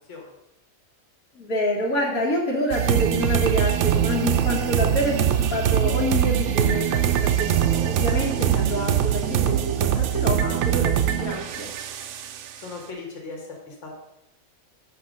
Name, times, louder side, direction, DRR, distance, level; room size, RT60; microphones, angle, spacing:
voice 1, 1.4-11.7, left 1 dB, 80° left, -2 dB, 1.8 m, -27 dB
sound 1, 2.7-12.6, right 10 dB, 65° right, 0.8 m, -23 dB
voice 2, 12.6-13.9, left 3 dB, 55° left, 0 dB, 1.8 m, -38 dB
5.8 x 5.1 x 6.3 m, 0.89 s
omnidirectional pair, 1.5 m